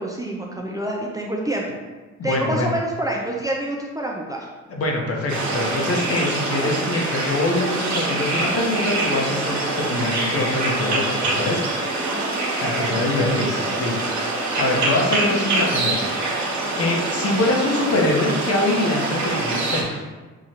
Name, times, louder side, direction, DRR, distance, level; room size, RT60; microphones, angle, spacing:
voice 1, 0.0-1.8 2.2-4.5 12.7-13.7 14.5-14.9, right 1 dB, 10° right, -2 dB, 0.4 m, -28 dB
voice 2, 2.2-2.7 4.7-11.6 12.6-13.5 13.8-14.0 14.2-16.0 16.8-20.0, left 2 dB, 50° left, -1 dB, 1.0 m, -24 dB
sound 1, 5.3-19.8, right 2 dB, 65° right, 1.0 m, -25 dB
4.8 x 2.4 x 2.8 m, 1.3 s
cardioid pair, 90°, 30 cm